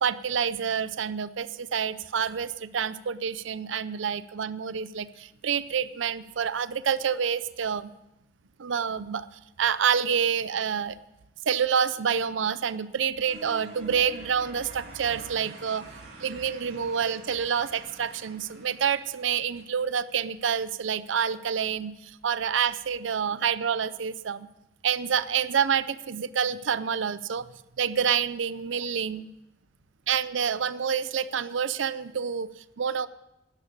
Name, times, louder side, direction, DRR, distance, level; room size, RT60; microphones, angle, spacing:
voice 1, 0.0-7.9 8.6-9.3 9.6-11.0 11.5-15.9 16.2-24.5 24.8-27.5 27.8-29.3 30.1-33.1, right 7 dB, 85° right, 16 dB, 0.5 m, -28 dB
sound 1, 13.3-20.2, right 2 dB, 55° right, 3.1 m, -48 dB
12.5 x 10.5 x 6.7 m, 0.90 s
head